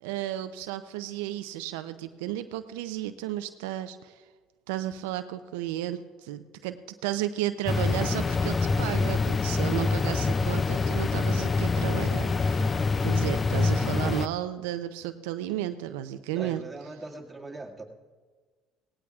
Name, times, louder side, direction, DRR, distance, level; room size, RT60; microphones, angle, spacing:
voice 1, 0.0-4.2 4.7-12.7 13.0-16.6, right 13 dB, 85° right, 10 dB, 0.5 m, -33 dB
sound 1, 7.7-14.3, left 4 dB, 30° left, 0.4 m, -25 dB
voice 2, 16.3-17.8, right 2 dB, 15° right, -1 dB, 2.0 m, -40 dB
17.5 x 17.5 x 2.4 m, 1.4 s
supercardioid pair, 75°, 0 cm